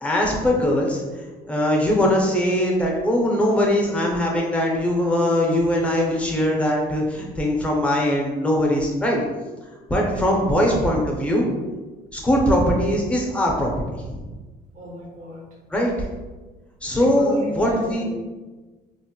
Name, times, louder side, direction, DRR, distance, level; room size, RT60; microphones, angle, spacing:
voice 1, 0.0-9.2 9.9-11.5 12.1-13.7 14.0-14.2 15.7-15.9 16.8-18.0, left 1 dB, 5° left, -1 dB, 0.6 m, -21 dB
voice 2, 14.7-15.6 16.9-18.2, left 1 dB, 50° right, -1 dB, 0.6 m, -34 dB
3.0 x 2.0 x 2.8 m, 1.3 s
cardioid pair, 110°, 17 cm